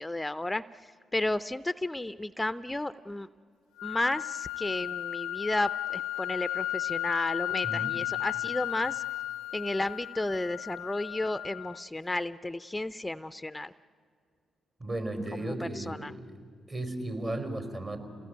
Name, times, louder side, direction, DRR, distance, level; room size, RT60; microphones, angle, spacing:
voice 1, 0.0-3.3 3.8-9.0 9.5-13.7 15.5-16.1, left 2 dB, 15° left, 15 dB, 0.6 m, -33 dB
sound 1, 3.8-11.8, left 14 dB, 80° left, 0.5 m, -34 dB
voice 2, 14.8-16.3 16.7-18.0, right 1 dB, 40° right, 7 dB, 4.9 m, -35 dB
28.0 x 19.0 x 9.5 m, 2.4 s
hypercardioid pair, 50°, 0 cm